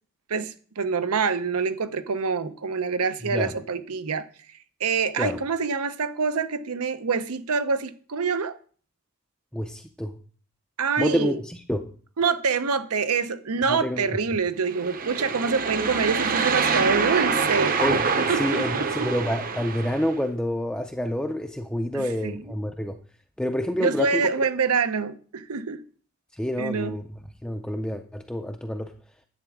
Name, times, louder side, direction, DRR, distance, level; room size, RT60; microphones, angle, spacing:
voice 1, 0.3-4.3 4.8-8.6 10.8-11.4 12.2-17.8 18.3-19.1 21.9-22.4 23.8-25.8 26.6-26.9, right 5 dB, 90° right, 0.7 m, -26 dB
voice 2, 9.5-10.2 11.0-11.9 13.7-14.1 17.7-18.0 18.3-23.0 23.4-24.2 26.3-27.0 27.4-28.9, equal, 5° left, 0.4 m, -28 dB
sound 1, 14.7-20.1, right 5 dB, 40° right, 0.7 m, -25 dB
10.5 x 8.0 x 3.6 m
head